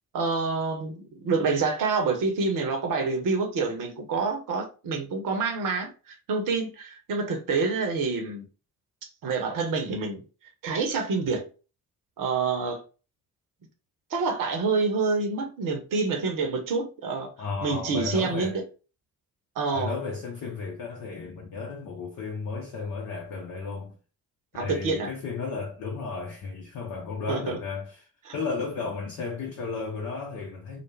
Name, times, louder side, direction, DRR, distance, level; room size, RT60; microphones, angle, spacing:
voice 1, 0.1-8.4 9.2-10.2 10.6-11.5 12.2-12.8 14.1-17.3 17.6-18.6 19.6-19.9 24.5-25.1 27.3-27.6 28.3-28.4, right 4 dB, 50° right, 0.9 m, -27 dB
voice 2, 17.4-18.6 19.7-23.9 24.6-30.8, left 4 dB, 45° left, 0.7 m, -34 dB
2.4 x 2.0 x 3.2 m
figure-of-eight pair, 40°, 42 cm